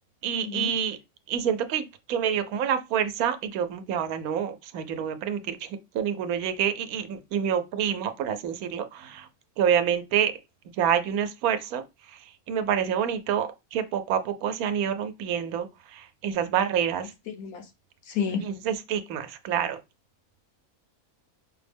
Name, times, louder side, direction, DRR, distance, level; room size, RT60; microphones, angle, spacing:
voice 1, 0.2-1.0 1.3-5.7 5.9-9.3 9.6-10.4 10.8-11.8 12.1-17.1 18.4-19.8, right 8 dB, 85° right, 1.1 m, -27 dB
voice 2, 17.3-17.7 18.0-18.5, left 7 dB, 80° left, 1.3 m, -30 dB
5.2 x 2.0 x 3.3 m
omnidirectional pair, 1.5 m